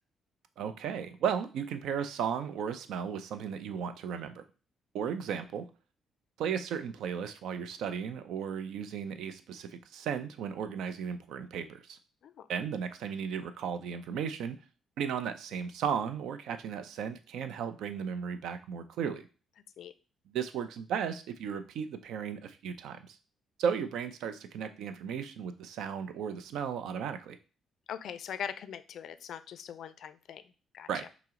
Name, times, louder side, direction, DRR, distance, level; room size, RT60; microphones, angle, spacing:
voice 1, 0.6-4.4 4.9-5.7 6.4-12.0 12.5-14.6 15.0-19.2 20.3-23.2 23.6-27.4 30.9-31.1, right 7 dB, 80° right, 10 dB, 0.4 m, -35 dB
voice 2, 27.9-30.4 30.7-30.9, left 8 dB, 70° left, 12 dB, 0.3 m, -41 dB
5.6 x 2.0 x 3.7 m, 0.35 s
cardioid pair, 90°, 0 cm